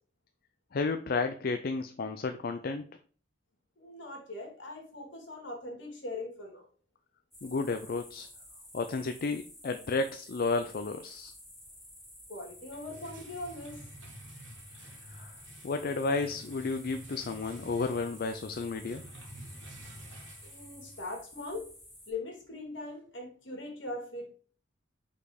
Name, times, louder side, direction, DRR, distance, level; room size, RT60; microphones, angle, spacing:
voice 1, 0.7-2.8 7.4-8.3 8.7-11.3 15.1-15.3 15.6-19.0, left 3 dB, 50° left, 8 dB, 0.4 m, -32 dB
voice 2, 3.8-6.6 12.3-13.8 20.4-21.7 22.1-24.3, left 2 dB, 70° left, 1 dB, 2.4 m, -41 dB
sound 1, 7.3-22.1, left 1 dB, ahead, 1.7 m, -52 dB
sound 2, 12.5-21.1, right 1 dB, 80° right, 1.6 m, -50 dB
5.4 x 4.2 x 4.9 m, 0.43 s
head